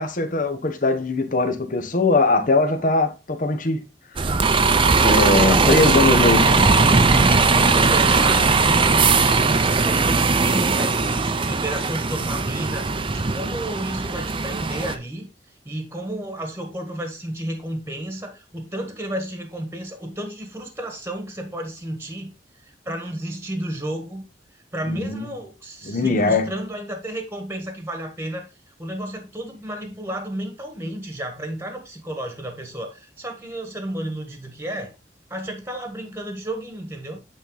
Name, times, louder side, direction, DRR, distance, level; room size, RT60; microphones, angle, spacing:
voice 1, 0.0-3.8 4.2-4.3 5.0-6.5 24.9-25.2 25.8-26.5, left 3 dB, 50° left, 1.0 m, -21 dB
Bus, 4.2-15.0, right 4 dB, 30° right, 0.6 m, -19 dB
voice 2, 5.3-6.0 6.4-6.8 7.5-15.3 15.6-22.3 22.6-24.2 24.7-28.5 28.8-34.9 35.3-37.2, right 1 dB, 15° right, 1.4 m, -32 dB
8.9 x 4.1 x 3.9 m
head